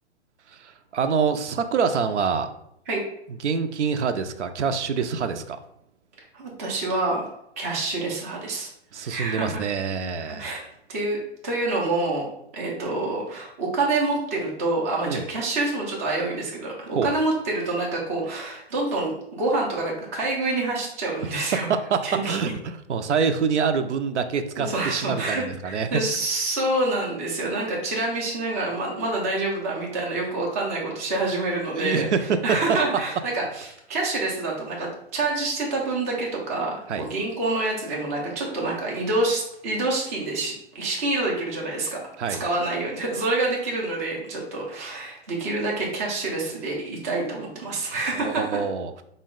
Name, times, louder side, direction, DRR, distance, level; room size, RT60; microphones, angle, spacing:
voice 1, 0.5-2.5 3.4-5.6 8.9-10.5 15.0-15.2 16.9-17.1 21.5-26.0 31.8-32.8 36.9-37.1 42.2-42.4 48.1-48.9, right 6 dB, 90° right, 9 dB, 0.5 m, -26 dB
voice 2, 6.3-7.3 7.6-8.7 9.0-9.7 10.2-10.6 10.9-12.3 12.5-21.7 22.0-22.4 24.6-32.1 32.4-42.0 42.4-48.4, right 2 dB, 15° right, -3 dB, 0.3 m, -27 dB
3.9 x 2.1 x 3.6 m, 0.76 s
hypercardioid pair, 140°, 34 cm